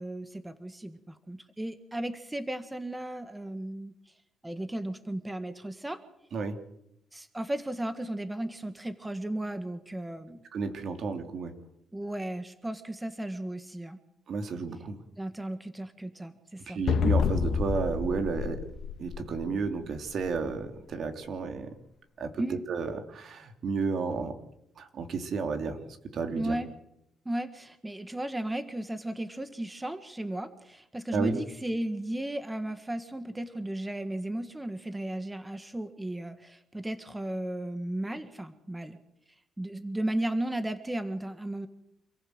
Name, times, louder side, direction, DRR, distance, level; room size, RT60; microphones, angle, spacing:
voice 1, 0.0-3.9 4.4-6.0 7.1-10.4 11.9-14.0 15.2-16.8 22.4-22.6 26.3-26.7 27.2-39.0 39.6-41.7, right 1 dB, 10° right, 10 dB, 1.7 m, -35 dB
voice 2, 10.5-11.5 14.3-15.0 16.7-18.6 19.0-21.7 22.2-24.3 24.8-25.8 26.1-26.6 31.1-31.3, right 5 dB, 60° right, 6 dB, 3.0 m, -32 dB
sound 1, 16.9-19.6, left 6 dB, 65° left, 2.2 m, -28 dB
27.5 x 15.5 x 8.0 m, 0.83 s
cardioid pair, 90°, 0 cm